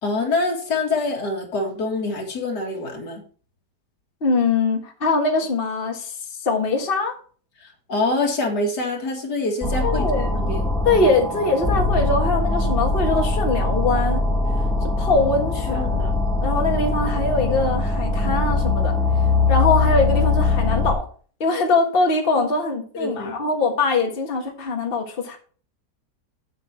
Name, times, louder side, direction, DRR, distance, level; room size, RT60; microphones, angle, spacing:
voice 1, 0.0-3.2 7.6-10.1 10.3-10.7 15.7-15.9 22.4-22.5 22.9-23.3, left 2 dB, 75° left, 2 dB, 2.5 m, -25 dB
voice 2, 4.2-6.1 6.4-7.1 9.8-10.4 10.8-14.2 14.8-16.1 16.4-18.9 19.5-21.0 21.4-25.4, left 3 dB, 35° left, 2 dB, 1.6 m, -22 dB
sound 1, 9.6-20.9, left 3 dB, ahead, 1.5 m, -22 dB
8.0 x 7.7 x 4.4 m, 0.42 s
omnidirectional pair, 1.7 m